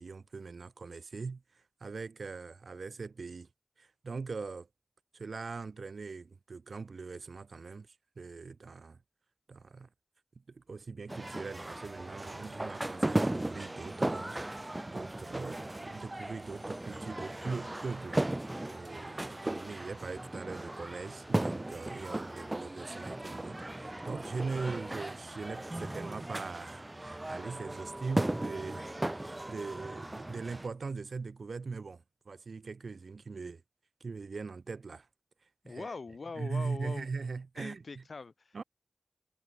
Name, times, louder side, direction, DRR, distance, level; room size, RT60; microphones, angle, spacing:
voice 1, 0.0-3.5 3.8-4.7 5.1-9.0 9.5-9.9 10.5-18.2 18.7-33.6 34.0-35.1 35.6-35.9 36.3-38.0 38.5-38.6, right 4 dB, 90° right, 1.4 m, -41 dB
sound 1, 11.1-30.7, right 1 dB, 25° right, 2.0 m, -36 dB
voice 2, 35.6-37.1 37.6-38.6, left 4 dB, 80° left, 3.8 m, -42 dB
wide cardioid pair, 55°, 0 cm